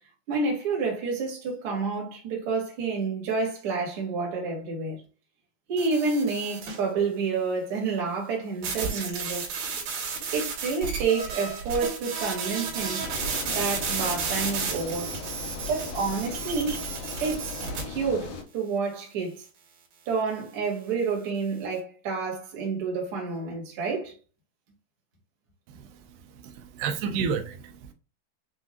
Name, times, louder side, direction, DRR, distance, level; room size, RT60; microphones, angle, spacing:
voice 1, 0.3-5.0 5.7-9.5 10.3-13.1 13.5-15.1 15.7-16.8 17.2-17.6 17.9-19.4 20.1-24.1, right 4 dB, 45° right, 2.0 m, -29 dB
sound 1, 5.8-6.8 8.6-17.8, right 5 dB, 65° right, 3.1 m, -32 dB
sound 2, 13.0-18.4, left 4 dB, 70° left, 1.6 m, -38 dB
voice 2, 25.7-27.9, right 6 dB, 90° right, 2.7 m, -32 dB
7.1 x 2.5 x 2.5 m
omnidirectional pair, 4.5 m